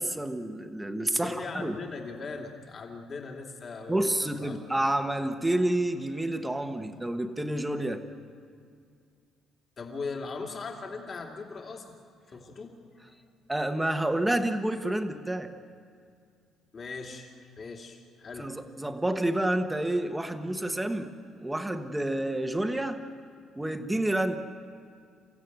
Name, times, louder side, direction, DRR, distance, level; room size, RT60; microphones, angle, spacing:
voice 1, 0.0-1.7 3.9-8.0 13.5-15.5 18.4-21.1 21.4-23.1 23.5-24.4, right 1 dB, 5° right, 7 dB, 1.2 m, -29 dB
voice 2, 1.1-4.6 9.8-11.8 12.3-12.8 13.1-13.2 16.7-18.5, left 4 dB, 35° left, 1 dB, 2.7 m, -39 dB
29.5 x 15.5 x 9.3 m, 2.2 s
cardioid pair, 155°, 0 cm